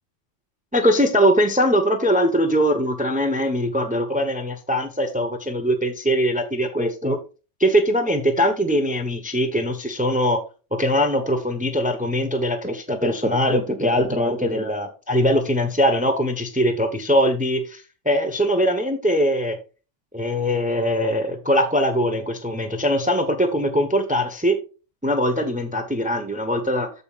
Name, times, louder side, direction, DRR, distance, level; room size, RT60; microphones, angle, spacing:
voice 1, 0.7-7.2 7.6-10.4 10.7-19.6 20.1-24.6 25.0-26.9, equal, 5° right, 0.9 m, -21 dB
14.0 x 5.3 x 2.4 m
omnidirectional pair, 1.2 m